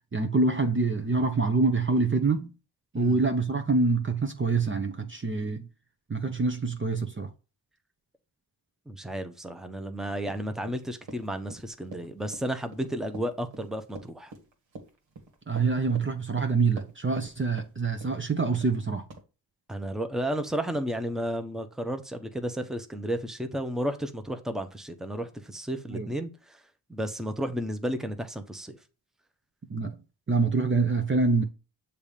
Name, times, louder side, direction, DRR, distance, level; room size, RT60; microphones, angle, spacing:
voice 1, 0.1-2.5 2.9-5.7 6.1-7.3 15.5-19.0 25.9-26.1 29.7-30.0 30.3-31.4, right 4 dB, 25° right, 0.8 m, -26 dB
voice 2, 8.9-14.3 19.7-26.6 26.9-28.8, right 1 dB, ahead, 0.9 m, -33 dB
Run, 10.2-17.3 17.6-18.2 18.5-18.8 19.1-19.2, right 2 dB, 80° right, 1.5 m, -45 dB
6.9 x 2.8 x 5.1 m
cardioid pair, 50°, 44 cm